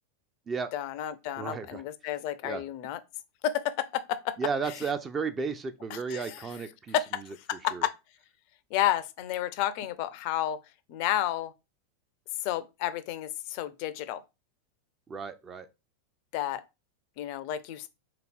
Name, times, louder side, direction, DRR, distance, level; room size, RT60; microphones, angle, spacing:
voice 1, 0.7-3.0 3.4-4.4 5.9-6.4 6.9-7.2 7.5-7.9 8.7-10.6 10.9-11.5 12.4-14.2 16.3-16.6 17.2-17.9, left 12 dB, 45° left, 0.4 m, -31 dB
voice 2, 1.4-1.8 2.4-2.6 4.4-6.9 7.7-7.9 15.1-15.7, right 5 dB, 20° right, 0.4 m, -33 dB
3.7 x 2.8 x 3.6 m
figure-of-eight pair, 90°, 0 cm